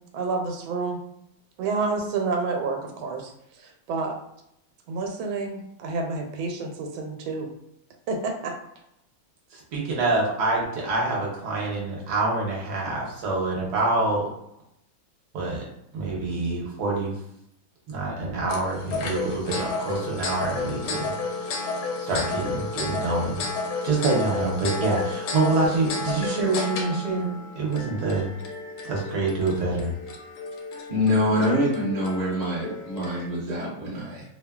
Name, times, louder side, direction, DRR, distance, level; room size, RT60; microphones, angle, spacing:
voice 1, 0.1-1.0 1.6-4.1 4.9-7.5 8.1-8.5, right 3 dB, 90° right, 2 dB, 1.4 m, -29 dB
voice 2, 9.5-14.3 15.3-15.6 15.9-17.1 17.9-21.1 21.4-21.7 22.0-23.4 23.8-28.3 28.8-29.9, right 3 dB, 65° right, -3 dB, 1.1 m, -26 dB
sound 1, 18.5-33.3, left 3 dB, 80° left, 1.3 m, -32 dB
voice 3, 30.9-34.2, left 1 dB, 30° right, -7 dB, 0.8 m, -25 dB
3.4 x 2.1 x 2.2 m, 0.78 s
omnidirectional pair, 2.2 m